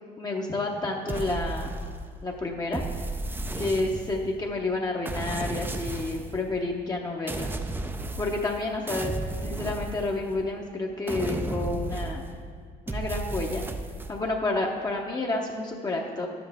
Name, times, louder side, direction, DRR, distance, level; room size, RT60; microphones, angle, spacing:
voice 1, 0.2-1.7 2.2-2.8 3.6-7.8 8.2-9.1 9.4-12.3 12.9-13.7 14.1-16.3, left 2 dB, 25° left, -1 dB, 0.7 m, -30 dB
sound 1, 1.1-2.2 2.7-4.3 5.0-6.4 7.3-8.6 8.9-10.5 11.1-12.4 12.9-14.1, right 2 dB, 10° right, 0.4 m, -33 dB
9.4 x 7.9 x 3.5 m, 2.1 s
cardioid pair, 110°, 17 cm